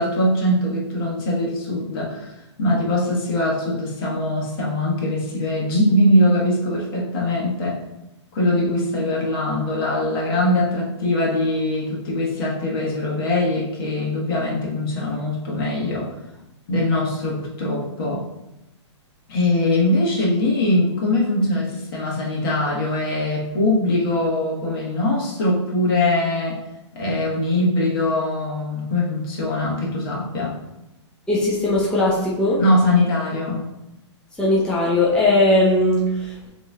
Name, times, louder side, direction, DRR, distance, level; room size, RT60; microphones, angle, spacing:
voice 1, 0.0-7.8 8.3-16.1 16.7-18.2 19.3-26.6 26.9-30.6 32.6-33.6, left 1 dB, 50° left, -3 dB, 1.6 m, -22 dB
voice 2, 31.3-32.6 34.4-36.5, left 1 dB, 5° left, -7 dB, 0.7 m, -19 dB
6.9 x 3.2 x 2.4 m, 0.93 s
hypercardioid pair, 140°, 15 cm